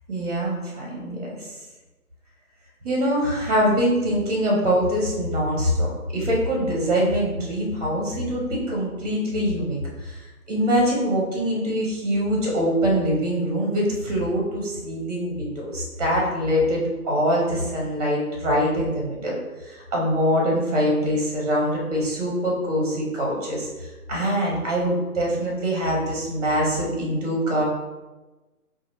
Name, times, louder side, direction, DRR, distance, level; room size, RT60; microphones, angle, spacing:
voice 1, 0.1-1.5 2.8-10.2 10.5-19.4 19.6-27.6, equal, 25° right, -2 dB, 0.8 m, -24 dB
3.0 x 2.5 x 3.9 m, 1.2 s
figure-of-eight pair, 150°, 46 cm